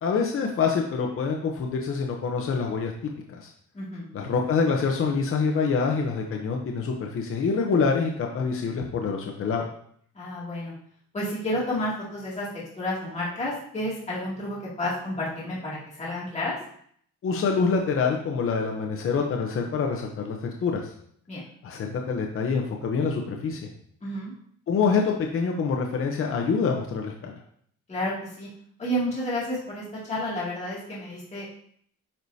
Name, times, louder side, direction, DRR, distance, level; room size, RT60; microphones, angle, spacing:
voice 1, 0.0-2.9 3.3-3.5 4.1-9.7 17.2-20.9 21.6-23.7 24.7-27.4, left 5 dB, 45° left, 1 dB, 0.8 m, -26 dB
voice 2, 3.7-4.1 10.1-10.7 11.1-12.5 12.8-16.6 21.3-21.4 24.0-24.3 27.9-28.5 28.8-31.5, left 1 dB, 20° left, -7 dB, 2.4 m, -30 dB
8.7 x 4.8 x 2.8 m, 0.64 s
cardioid pair, 130°, 31 cm